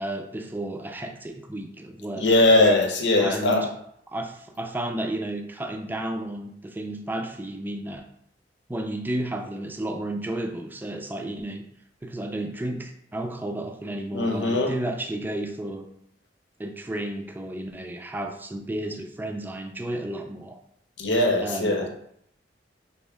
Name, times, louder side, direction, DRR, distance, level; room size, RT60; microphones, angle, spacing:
voice 1, 0.0-2.3 3.2-3.7 4.1-8.1 8.7-11.6 12.0-15.9 16.6-20.6 21.4-21.9, right 1 dB, 10° right, 5 dB, 0.4 m, -32 dB
voice 2, 2.2-3.6 14.1-14.7 21.0-21.9, left 2 dB, 85° left, 2 dB, 0.8 m, -20 dB
5.3 x 2.7 x 3.4 m, 0.71 s
head